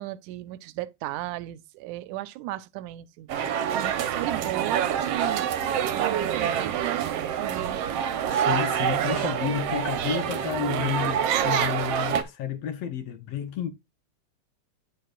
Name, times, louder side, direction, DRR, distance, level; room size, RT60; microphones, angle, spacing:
voice 1, 0.0-3.3 3.7-5.5 5.9-7.8, right 16 dB, 90° right, 2.1 m, -35 dB
sound 1, 3.3-12.2, right 9 dB, 65° right, 1.8 m, -26 dB
voice 2, 8.3-13.7, left 9 dB, 65° left, 1.9 m, -31 dB
10.0 x 6.6 x 2.4 m
omnidirectional pair, 3.4 m